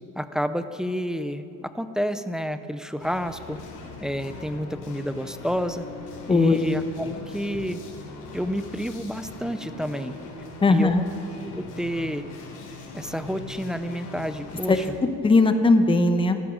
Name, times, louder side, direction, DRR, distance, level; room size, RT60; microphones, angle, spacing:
voice 1, 0.2-3.6 4.0-5.9 6.3-7.8 8.3-10.2 10.7-11.0 11.5-12.2 12.9-14.9, equal, ahead, 10 dB, 0.3 m, -29 dB
sound 1, 3.0-14.9, left 3 dB, 60° left, 3.6 m, -41 dB
voice 2, 10.6-11.0 14.7-14.8 15.2-16.4, left 3 dB, 15° left, 8 dB, 0.8 m, -18 dB
15.0 x 14.5 x 6.3 m, 2.7 s
cardioid pair, 155°, 35 cm